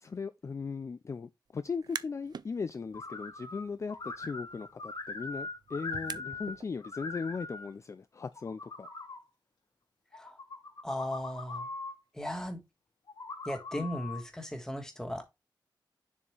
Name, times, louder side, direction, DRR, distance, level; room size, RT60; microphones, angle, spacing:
voice 1, 0.0-8.9 13.7-13.9, left 5 dB, 40° left, 0.4 m, -38 dB
sound 1, 1.7-2.5 2.9-6.6, right 6 dB, 65° right, 0.4 m, -46 dB
sound 2, 2.9-3.6 3.9-6.5 6.8-7.7 8.2-9.2 10.1-12.0 13.1-14.2, left 3 dB, 85° left, 3.1 m, -41 dB
voice 2, 10.8-11.7 12.1-12.6 13.4-15.2, left 1 dB, 5° left, 1.5 m, -36 dB
6.9 x 4.3 x 3.2 m
wide cardioid pair, 135°, 8 cm